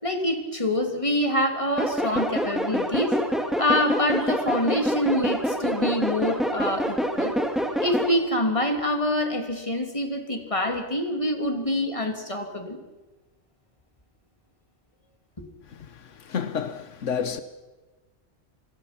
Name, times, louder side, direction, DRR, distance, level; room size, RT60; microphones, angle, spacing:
voice 1, 0.0-3.1 3.6-7.4 7.8-12.8, left 1 dB, 25° left, 2.9 m, -26 dB
sound 1, 1.8-8.1, equal, ahead, 2.2 m, -26 dB
voice 2, 15.9-17.4, left 7 dB, 85° left, 1.4 m, -30 dB
28.0 x 21.0 x 5.9 m
omnidirectional pair, 1.2 m